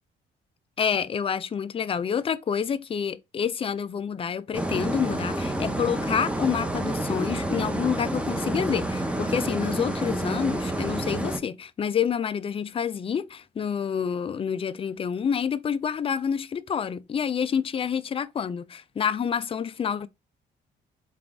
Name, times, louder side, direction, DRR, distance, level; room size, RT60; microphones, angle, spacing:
voice 1, 0.8-20.1, left 7 dB, 30° left, 0.4 m, -28 dB
sound 1, 4.5-11.4, right 1 dB, 5° right, 0.7 m, -29 dB
3.7 x 2.4 x 3.5 m
cardioid pair, 90°, 20 cm